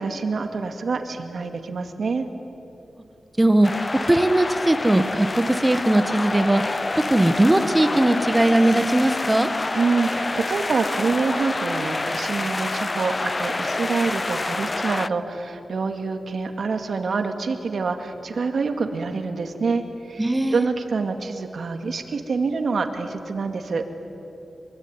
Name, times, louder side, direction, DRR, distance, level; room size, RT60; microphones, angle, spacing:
voice 1, 0.0-2.3 9.7-23.8, right 4 dB, 70° right, 6 dB, 2.3 m, -26 dB
voice 2, 3.4-3.7 4.0-6.6 7.1-9.5 20.2-20.7, right 1 dB, 15° right, 10 dB, 1.4 m, -19 dB
sound 1, 3.6-15.1, left 2 dB, 30° left, 0.6 m, -27 dB
24.5 x 23.5 x 9.8 m, 2.9 s
wide cardioid pair, 100°, 0 cm